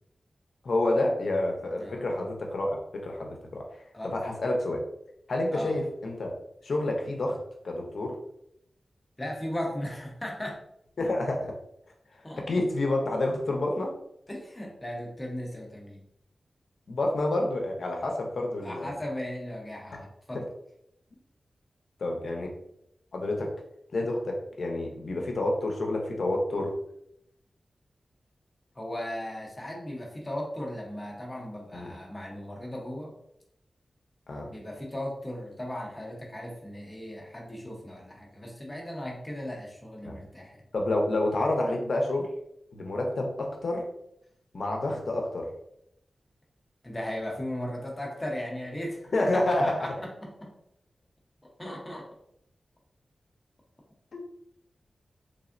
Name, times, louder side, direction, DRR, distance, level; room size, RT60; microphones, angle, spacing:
voice 1, 0.6-4.8 5.3-6.3 6.6-7.4 7.6-8.2 11.0-11.5 12.4-13.9 16.9-18.9 22.0-22.5 23.1-23.5 23.9-26.7 31.7-31.9 34.3-34.5 40.0-40.2 40.7-42.3 42.7-43.9 44.5-45.5 49.1-49.8 54.1-54.2, left 2 dB, 70° left, 1 dB, 0.6 m, -28 dB
voice 2, 9.2-10.6 12.2-12.5 14.3-16.0 18.6-20.4 28.8-33.2 34.5-40.6 46.8-50.5 51.4-52.1, left 1 dB, 20° left, -1 dB, 0.7 m, -37 dB
3.4 x 2.0 x 2.4 m, 0.77 s
wide cardioid pair, 90°, 0 cm